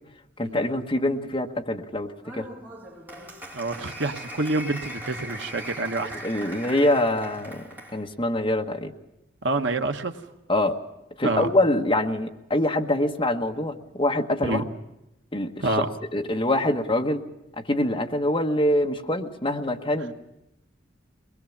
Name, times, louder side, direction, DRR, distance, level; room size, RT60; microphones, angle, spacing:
voice 1, 0.4-2.4 6.2-7.6 7.9-8.9 10.5-10.8 11.2-14.6 15.3-15.6 16.1-17.2 17.6-20.1, left 1 dB, 25° left, 3 dB, 1.3 m, -24 dB
Applause, 2.2-8.0, right 1 dB, 10° right, 3.0 m, -39 dB
voice 2, 3.5-6.1 9.4-10.2 11.2-11.5 14.4-14.7 15.6-15.9, right 2 dB, 65° right, 6 dB, 1.1 m, -27 dB
22.0 x 21.0 x 7.2 m, 0.90 s
head